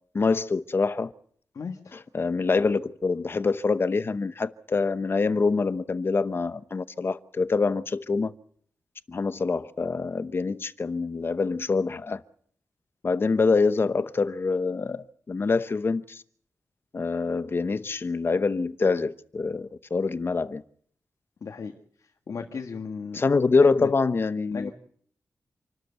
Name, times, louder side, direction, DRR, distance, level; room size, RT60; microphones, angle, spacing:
voice 1, 0.1-1.1 2.1-8.3 9.1-12.2 13.0-16.2 16.9-20.6 23.1-24.7, left 4 dB, 40° left, 0.9 m, -25 dB
voice 2, 1.5-2.0 21.4-21.7 22.3-23.2 23.6-23.9 24.5-24.7, left 5 dB, 65° left, 1.7 m, -35 dB
28.0 x 13.0 x 8.1 m
wide cardioid pair, 145°, 6 cm